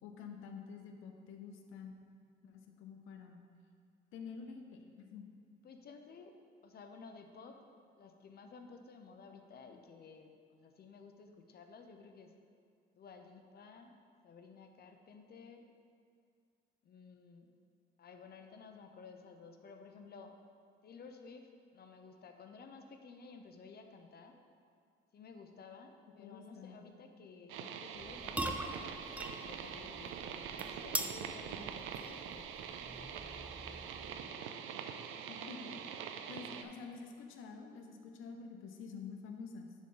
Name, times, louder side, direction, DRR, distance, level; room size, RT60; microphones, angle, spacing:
voice 1, 0.0-2.1 2.4-3.4 4.1-5.3 26.2-26.8 35.3-36.0 36.3-39.7, left 5 dB, 90° left, 4 dB, 0.7 m, -48 dB
voice 2, 5.6-6.4 6.6-7.7 8.0-12.3 12.9-13.9 14.2-15.7 16.8-17.5 18.0-20.4 20.8-21.5 21.7-24.4 25.1-29.0 29.4-32.5 32.9-34.7, left 5 dB, 55° left, 5 dB, 0.7 m, -54 dB
sound 1, 27.5-36.6, right 8 dB, 90° right, 0.5 m, -44 dB
sound 2, 28.0-34.4, right 1 dB, 5° right, 0.4 m, -43 dB
11.0 x 3.7 x 3.8 m, 2.3 s
cardioid pair, 90°, 20 cm